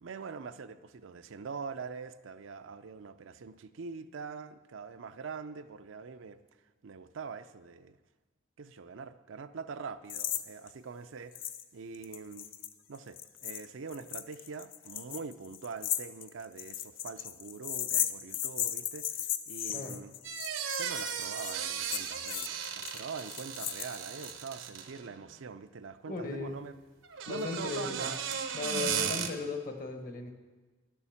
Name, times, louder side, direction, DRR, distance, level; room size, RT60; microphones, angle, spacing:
voice 1, 0.0-6.4 6.8-8.0 8.6-11.4 11.7-12.5 12.9-20.1 20.7-26.7 27.3-28.2 28.9-29.2, right 5 dB, 75° right, 0.5 m, -43 dB
sound 1, 10.1-10.4 10.7-10.8 11.3-11.6 11.9-24.3, left 11 dB, 75° left, 0.6 m, -36 dB
voice 2, 19.7-20.0 26.1-26.6 27.3-28.1 28.5-30.3, left 3 dB, 45° left, 1.3 m, -37 dB
sound 2, 20.2-25.1 27.0-29.3, right 7 dB, 90° right, 1.0 m, -36 dB
10.5 x 6.9 x 7.1 m
head